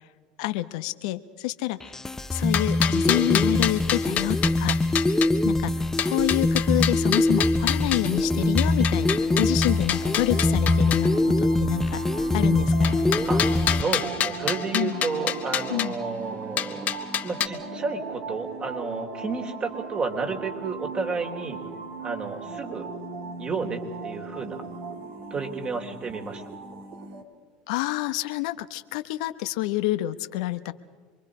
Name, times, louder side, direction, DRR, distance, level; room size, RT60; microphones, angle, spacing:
voice 1, 0.4-1.9 2.3-4.8 5.4-12.0 12.3-13.0 14.7-15.0 15.7-15.9 27.7-30.7, left 17 dB, 70° left, 11 dB, 0.9 m, -28 dB
sound 1, 1.8-13.8, left 2 dB, 10° left, 0.7 m, -23 dB
sound 2, 2.3-5.3 6.0-8.1 8.6-11.1 12.8-15.9 16.6-17.5, left 10 dB, 45° left, 1.4 m, -28 dB
voice 2, 3.1-3.6 13.2-16.9 17.2-21.6 22.0-22.9 23.4-24.6 25.3-26.4, right 4 dB, 30° right, 3 dB, 3.7 m, -31 dB
sound 3, 8.0-27.2, right 4 dB, 60° right, 2.7 m, -38 dB
26.5 x 23.0 x 5.0 m, 1.5 s
hypercardioid pair, 85°, 4 cm